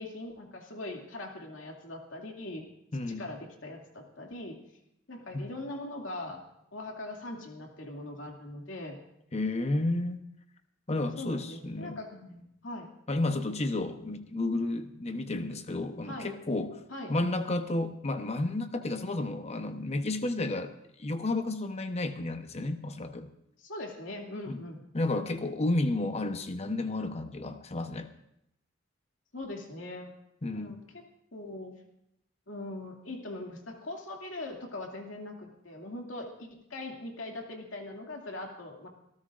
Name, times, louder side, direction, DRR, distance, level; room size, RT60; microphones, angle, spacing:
voice 1, 0.0-2.7 3.1-4.6 5.1-6.4 6.7-9.0 11.2-12.9 16.1-16.3 16.9-17.1 23.6-24.8 29.3-30.1 30.5-31.0 31.3-31.8 32.5-38.9, left 2 dB, 80° left, 1 dB, 2.4 m, -41 dB
voice 2, 2.9-3.3 5.3-5.5 9.3-10.2 10.9-12.0 13.1-16.8 17.1-20.7 21.0-23.3 24.5-24.6 24.9-28.1 30.4-30.8, left 2 dB, 35° left, 8 dB, 0.9 m, -31 dB
26.5 x 14.0 x 2.5 m, 0.79 s
head